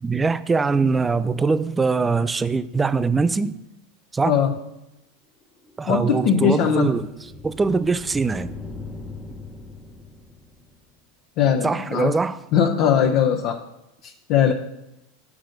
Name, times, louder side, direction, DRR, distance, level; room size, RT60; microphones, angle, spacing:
voice 1, 0.0-3.6 4.1-4.3 5.8-7.1 7.4-8.5 11.6-12.4 14.5-14.6, right 4 dB, 15° right, 0.4 m, -22 dB
sound 1, 5.4-11.0, left 3 dB, 10° left, 0.8 m, -40 dB
voice 2, 5.9-7.0 11.4-12.1 12.5-13.6 14.0-14.5, left 8 dB, 55° left, 0.7 m, -20 dB
6.2 x 6.0 x 5.1 m
supercardioid pair, 125°, 0 cm